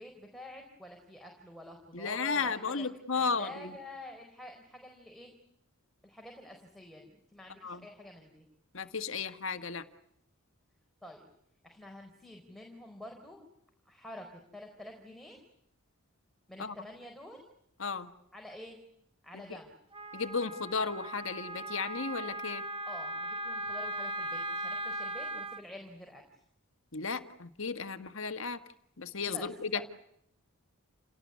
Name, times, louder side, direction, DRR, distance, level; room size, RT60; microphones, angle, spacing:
voice 1, 0.0-2.8 3.1-5.3 6.0-8.5 11.0-11.3 11.6-13.4 13.9-15.4 16.5-17.4 18.3-18.8 19.2-19.8 22.9-26.2 29.2-29.8, left 1 dB, ahead, 2 dB, 4.4 m, -48 dB
voice 2, 1.9-3.7 7.6-7.8 8.7-9.8 16.6-16.7 17.8-18.1 20.1-22.6 26.9-28.6 29.0-29.9, left 5 dB, 65° left, 9 dB, 1.7 m, -34 dB
Wind instrument woodwind instrument, 19.9-25.6, right 1 dB, 25° right, 1.8 m, -38 dB
29.5 x 18.5 x 9.7 m, 0.74 s
head